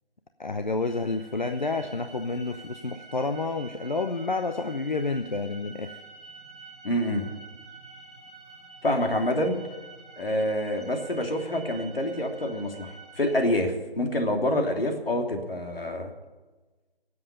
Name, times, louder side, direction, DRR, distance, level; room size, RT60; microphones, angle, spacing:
voice 1, 0.4-6.0, left 3 dB, 50° left, 8 dB, 0.8 m, -29 dB
sound 1, 0.8-13.4, right 4 dB, 15° right, 1.9 m, -48 dB
voice 2, 6.8-7.3 8.8-9.6 10.2-16.1, left 1 dB, 70° left, 3 dB, 3.0 m, -27 dB
18.0 x 8.0 x 9.8 m, 1.2 s
figure-of-eight pair, 175°, 30 cm